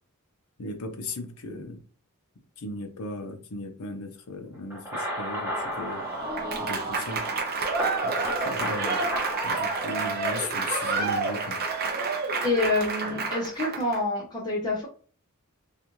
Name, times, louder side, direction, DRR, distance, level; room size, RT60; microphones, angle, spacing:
voice 1, 0.6-1.8 2.6-6.1 6.6-7.3 8.0-9.1 9.4-11.6 13.0-13.3, left 2 dB, 75° left, 0.6 m, -37 dB
sound 1, 4.7-10.5, equal, 10° right, 1.0 m, -34 dB
Applause / Crowd, 5.8-14.0, right 4 dB, 45° right, 0.5 m, -29 dB
voice 2, 12.4-14.9, left 2 dB, 20° left, 0.7 m, -27 dB
2.5 x 2.4 x 3.0 m
head